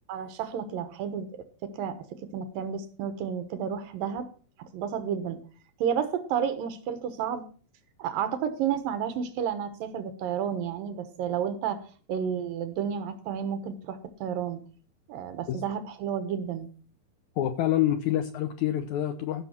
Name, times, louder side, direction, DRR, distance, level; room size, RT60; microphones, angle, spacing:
voice 1, 0.1-4.3 4.6-5.4 5.8-7.4 8.0-11.8 12.1-14.6 15.1-16.7, right 8 dB, 75° right, 10 dB, 2.9 m, -31 dB
voice 2, 17.4-19.4, left 12 dB, 75° left, 9 dB, 1.7 m, -27 dB
15.0 x 6.5 x 5.8 m, 0.42 s
omnidirectional pair, 4.1 m